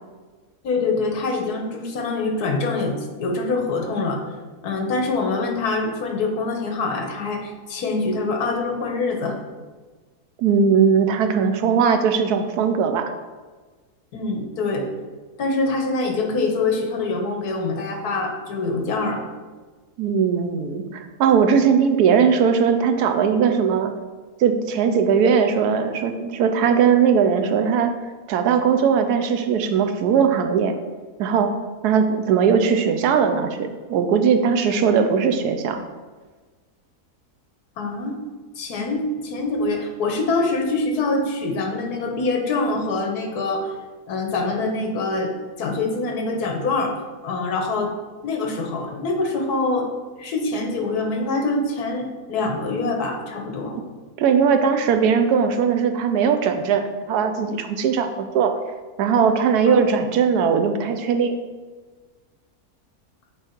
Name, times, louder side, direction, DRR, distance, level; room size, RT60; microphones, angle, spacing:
voice 1, 0.6-4.2 4.6-9.4 14.1-14.9 15.4-19.2 37.8-38.2 38.6-43.8 44.1-45.3 45.6-47.9 48.2-49.9 50.2-53.8 59.7-59.8, left 3 dB, 80° left, 3 dB, 1.4 m, -24 dB
voice 2, 10.4-13.1 20.0-23.9 24.4-27.9 28.3-30.7 31.2-31.5 31.8-35.8 53.7-53.8 54.2-58.5 59.0-61.3, right 6 dB, 80° right, 7 dB, 1.1 m, -19 dB
8.2 x 3.1 x 4.4 m, 1.4 s
omnidirectional pair, 1.7 m